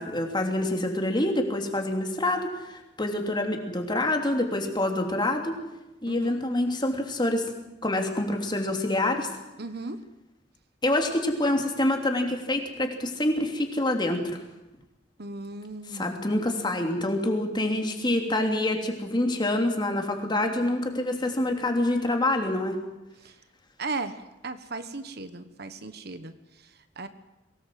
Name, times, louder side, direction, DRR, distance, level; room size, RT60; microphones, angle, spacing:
voice 1, 0.0-5.6 6.0-7.5 7.8-9.3 10.8-14.3 15.9-22.8, left 1 dB, 25° left, 3 dB, 3.2 m, -26 dB
voice 2, 6.1-6.4 9.6-10.0 15.2-16.3 23.2-23.4 23.8-27.1, right 3 dB, 60° right, 10 dB, 1.3 m, -37 dB
23.5 x 18.5 x 7.8 m, 0.98 s
head